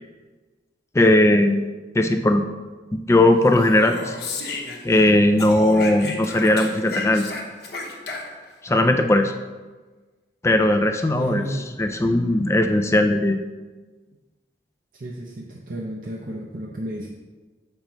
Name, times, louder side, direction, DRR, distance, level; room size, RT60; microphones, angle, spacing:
voice 1, 0.9-1.7 1.9-2.5 2.9-4.1 4.8-7.3 8.6-9.3 10.4-11.4 11.8-13.4, left 1 dB, 15° left, 7 dB, 0.4 m, -18 dB
Speech, 3.4-5.1 5.4-8.5, left 3 dB, 60° left, 1.0 m, -33 dB
voice 2, 11.1-11.7 14.9-17.1, right 1 dB, 50° right, -2 dB, 0.6 m, -32 dB
7.6 x 5.4 x 3.0 m, 1.3 s
head